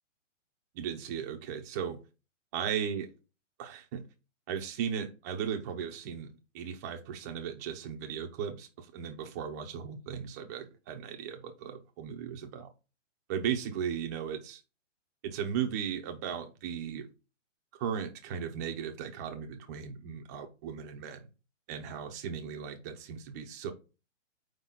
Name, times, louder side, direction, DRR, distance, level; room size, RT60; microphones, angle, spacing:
voice 1, 0.7-2.0 2.5-3.1 3.6-4.0 4.5-12.7 13.3-14.6 15.2-17.1 17.7-21.2 21.7-23.7, right 8 dB, 15° right, 4 dB, 0.5 m, -36 dB
4.8 x 3.9 x 5.7 m, 0.31 s
hypercardioid pair, 150°, 38 cm